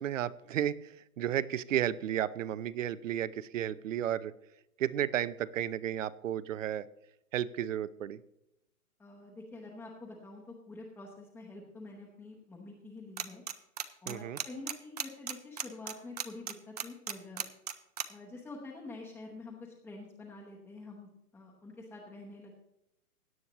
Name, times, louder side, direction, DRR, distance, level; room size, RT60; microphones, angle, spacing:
voice 1, 0.0-4.3 4.8-6.9 7.3-8.2 14.1-14.4, right 11 dB, 60° right, 18 dB, 0.8 m, -33 dB
voice 2, 9.0-13.4 14.0-17.5 18.1-22.6, left 2 dB, 5° left, -3 dB, 0.9 m, -47 dB
sound 1, 13.2-13.5 13.8-18.0, right 8 dB, 30° right, 0.5 m, -35 dB
17.0 x 9.9 x 3.0 m, 0.84 s
hypercardioid pair, 155°, 44 cm